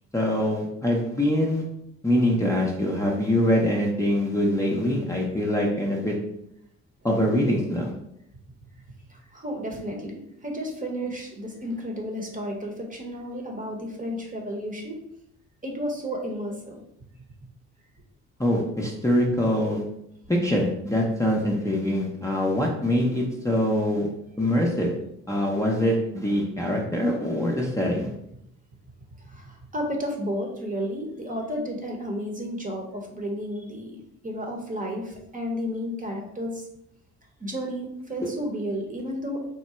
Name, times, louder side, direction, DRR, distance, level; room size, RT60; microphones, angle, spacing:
voice 1, 0.1-1.6 2.0-6.1 7.0-7.9 18.4-19.8 20.3-24.1 24.4-24.9 25.3-28.1, left 1 dB, 10° left, -3 dB, 0.6 m, -24 dB
voice 2, 9.1-15.0 15.6-16.8 29.3-34.0 34.2-36.7 37.4-39.4, equal, 25° right, 1 dB, 0.9 m, -32 dB
3.7 x 2.1 x 4.2 m, 0.77 s
cardioid pair, 90°, 30 cm